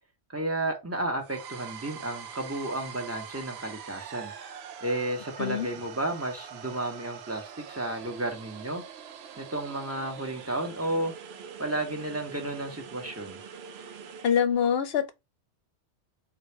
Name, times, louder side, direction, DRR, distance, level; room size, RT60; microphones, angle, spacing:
voice 1, 0.3-4.3 4.8-8.8 9.4-11.1 11.6-13.4, right 1 dB, 15° right, 0.9 m, -32 dB
sound 1, 1.2-14.4, right 7 dB, 65° right, 0.8 m, -44 dB
voice 2, 14.2-15.1, left 8 dB, 60° left, 0.8 m, -25 dB
3.9 x 2.5 x 4.4 m
omnidirectional pair, 1.2 m